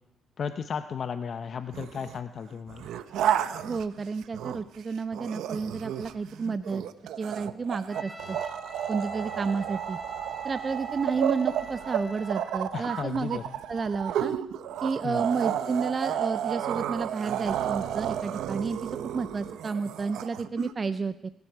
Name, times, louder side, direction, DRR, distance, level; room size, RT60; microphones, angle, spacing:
voice 1, 0.4-2.9 12.7-13.6 15.0-15.2, left 7 dB, 50° left, 9 dB, 0.7 m, -34 dB
sound 1, 1.7-2.2 2.7-4.8 5.1-20.7, right 10 dB, 80° right, 0.8 m, -32 dB
voice 2, 3.6-6.8 7.2-8.4 8.9-10.0 10.4-13.4 13.7-14.3 14.8-21.3, right 4 dB, 35° right, 13 dB, 0.4 m, -31 dB
Trumpet, 7.9-12.6, left 1 dB, 10° left, 2.7 m, -45 dB
24.0 x 12.5 x 4.7 m, 0.92 s
cardioid pair, 90°, 0 cm